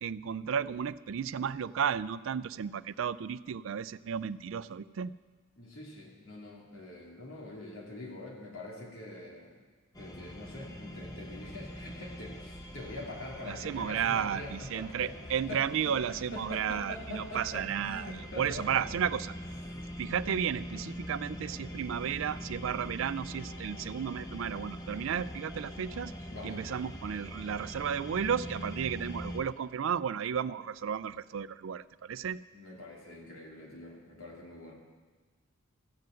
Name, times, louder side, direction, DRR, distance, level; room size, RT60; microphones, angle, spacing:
voice 1, 0.0-5.1 13.5-18.1 18.4-19.4 20.0-26.1 26.4-32.4, right 8 dB, 65° right, 17 dB, 0.4 m, -33 dB
voice 2, 5.6-9.6 10.0-18.8 19.7-19.8 26.3-26.6 32.5-34.7, left 2 dB, 85° left, -2 dB, 3.0 m, -44 dB
sound 1, 9.9-29.4, equal, 20° left, 0.9 m, -43 dB
14.5 x 7.6 x 7.6 m, 1.4 s
head